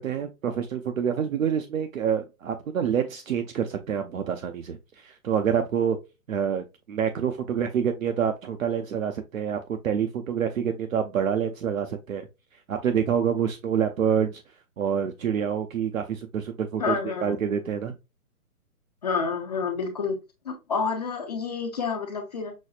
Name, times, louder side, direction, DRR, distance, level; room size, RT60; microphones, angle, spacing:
voice 1, 0.0-6.0 6.3-12.3 12.7-14.4 14.8-17.9, right 8 dB, 60° right, 0.7 m, -27 dB
voice 2, 16.8-17.3 19.0-20.2 20.4-22.5, left 5 dB, 30° left, 0.6 m, -29 dB
6.2 x 2.1 x 2.3 m
hypercardioid pair, 150°, 45 cm